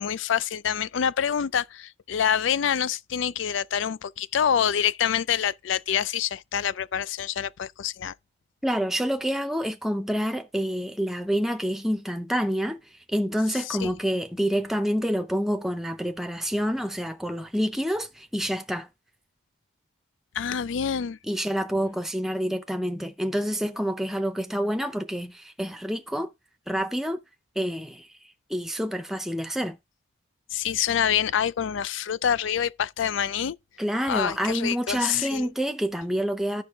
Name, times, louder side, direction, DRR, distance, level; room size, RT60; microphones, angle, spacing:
voice 1, 0.0-8.1 13.5-13.9 20.3-21.2 30.5-33.6 34.1-35.5, left 8 dB, 75° left, 0.4 m, -26 dB
voice 2, 8.6-12.8 13.1-18.9 21.3-26.3 26.7-27.2 27.6-28.1 28.5-29.8 33.8-36.6, equal, ahead, 0.6 m, -27 dB
13.5 x 4.7 x 3.5 m
head